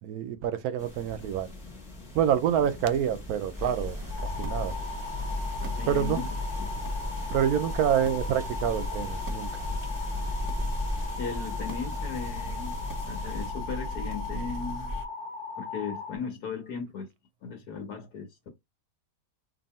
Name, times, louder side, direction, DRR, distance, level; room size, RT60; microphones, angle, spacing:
voice 1, 0.0-1.5 2.1-4.7 5.9-6.2 7.3-9.5, right 9 dB, 70° right, 1.0 m, -27 dB
sound 1, 0.8-13.5, left 1 dB, 25° left, 1.1 m, -41 dB
sound 2, 3.6-15.0, left 1 dB, 20° right, 0.6 m, -35 dB
sound 3, 4.1-16.2, left 4 dB, 55° left, 0.6 m, -39 dB
voice 2, 5.6-6.3 6.6-6.7 11.2-12.8 13.1-14.9 15.6-17.1 17.4-18.5, left 6 dB, 70° left, 1.4 m, -37 dB
2.8 x 2.7 x 4.1 m
omnidirectional pair, 1.8 m